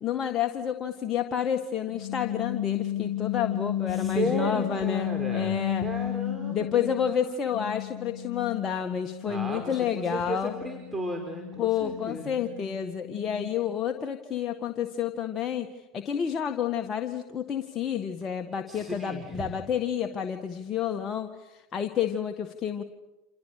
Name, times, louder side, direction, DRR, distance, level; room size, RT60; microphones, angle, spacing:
voice 1, 0.0-5.9 6.5-10.5 11.6-22.8, left 8 dB, 35° left, 5 dB, 1.8 m, -30 dB
sound 1, 1.9-7.2 7.5-13.7, left 12 dB, 65° left, 0.9 m, -33 dB
voice 2, 3.9-7.3 9.3-12.3 18.7-19.5, right 1 dB, 10° right, 2 dB, 5.0 m, -35 dB
29.0 x 28.0 x 6.8 m, 1.0 s
hypercardioid pair, 80°, 0 cm